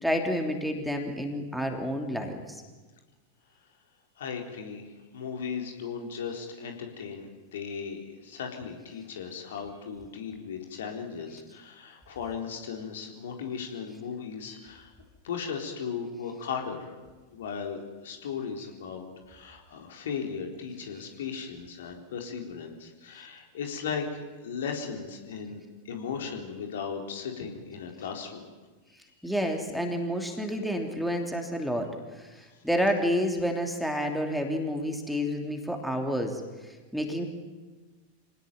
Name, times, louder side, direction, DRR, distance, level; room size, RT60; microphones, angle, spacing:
voice 1, 0.0-2.6 29.2-36.4 36.7-37.2, equal, ahead, 3 dB, 3.2 m, -29 dB
voice 2, 4.2-14.9 15.2-16.9 17.3-28.5, left 6 dB, 60° left, 3 dB, 4.0 m, -37 dB
26.0 x 18.5 x 9.3 m, 1.3 s
figure-of-eight pair, 90°, 0 cm